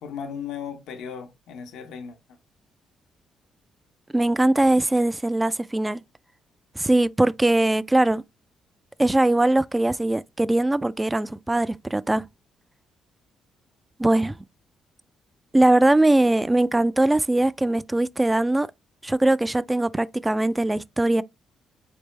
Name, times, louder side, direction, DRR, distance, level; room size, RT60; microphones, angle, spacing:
voice 1, 0.0-2.4, left 7 dB, 85° left, 0.9 m, -36 dB
voice 2, 4.1-6.0 6.8-8.2 9.0-12.2 14.0-14.3 15.5-18.7 19.0-21.2, right 1 dB, 15° right, 0.3 m, -21 dB
4.3 x 3.4 x 3.1 m
cardioid pair, 90°, 0 cm